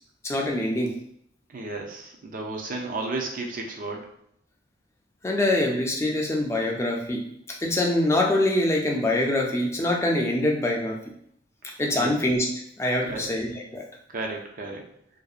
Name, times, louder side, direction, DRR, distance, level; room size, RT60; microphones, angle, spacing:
voice 1, 0.2-0.9 5.2-7.2 7.6-11.0 11.8-12.5 12.8-13.8, left 1 dB, 15° left, 0 dB, 0.4 m, -24 dB
voice 2, 1.5-4.1 11.6-12.1 13.0-13.3 14.1-14.8, right 2 dB, 45° right, 1 dB, 0.5 m, -33 dB
2.6 x 2.1 x 2.4 m, 0.70 s
head